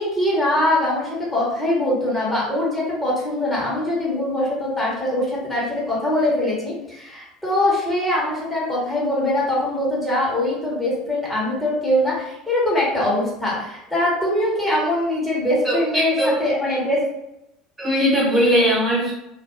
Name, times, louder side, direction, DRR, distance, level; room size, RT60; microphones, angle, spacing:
voice 1, 0.0-17.0, left 1 dB, 10° left, -6 dB, 1.2 m, -22 dB
voice 2, 15.6-16.3 17.8-19.1, equal, 15° right, -7 dB, 1.0 m, -19 dB
2.5 x 2.2 x 2.6 m, 0.86 s
figure-of-eight pair, 70°, 0 cm